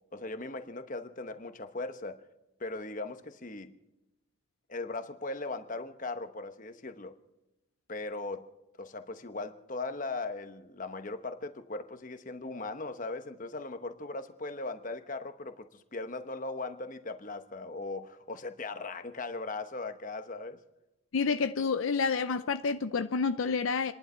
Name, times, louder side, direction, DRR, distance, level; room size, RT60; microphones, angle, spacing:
voice 1, 0.1-2.2 2.6-3.7 4.7-7.2 7.9-8.5 8.8-20.6, left 3 dB, 35° left, 1.0 m, -38 dB
voice 2, 21.1-23.9, left 5 dB, 70° left, 0.5 m, -29 dB
29.0 x 11.0 x 4.4 m
head